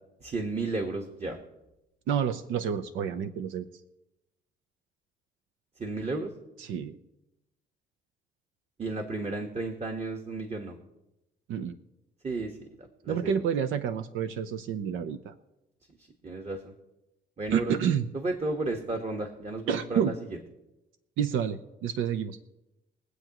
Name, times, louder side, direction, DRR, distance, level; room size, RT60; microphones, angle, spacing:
voice 1, 0.2-1.4 5.8-6.3 8.8-10.8 12.2-12.7 13.0-13.3 16.2-16.7 17.4-17.8 18.1-20.1, right 2 dB, 35° right, 2 dB, 1.4 m, -33 dB
voice 2, 2.1-3.6 6.6-7.0 11.5-11.8 13.1-15.3 17.5-18.1 19.7-20.1 21.2-22.4, right 8 dB, 90° right, 8 dB, 0.6 m, -29 dB
23.0 x 8.0 x 3.0 m, 0.94 s
cardioid pair, 90°, 20 cm